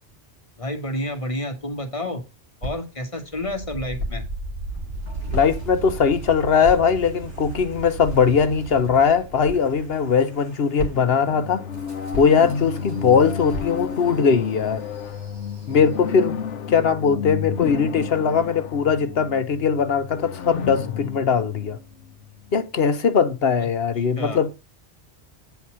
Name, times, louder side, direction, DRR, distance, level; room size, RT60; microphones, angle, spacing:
voice 1, 0.6-2.2 2.6-4.2 24.2-24.4, left 1 dB, 30° left, 1.6 m, -29 dB
sound 1, 2.6-3.0 4.0-4.3 5.3-5.7 6.6-7.0 8.0-8.4 9.5-9.7 10.8-11.2 12.1-12.6 13.5-13.9, left 1 dB, 60° right, 2.5 m, -33 dB
Wind, 3.2-16.2, right 3 dB, 90° right, 5.5 m, -37 dB
voice 2, 5.3-11.6 12.1-14.8 15.7-16.4 16.7-21.8 22.5-24.5, left 6 dB, 60° left, 1.0 m, -20 dB
sound 2, 10.9-22.6, left 7 dB, 90° left, 1.1 m, -32 dB
9.3 x 4.1 x 6.2 m
omnidirectional pair, 1.2 m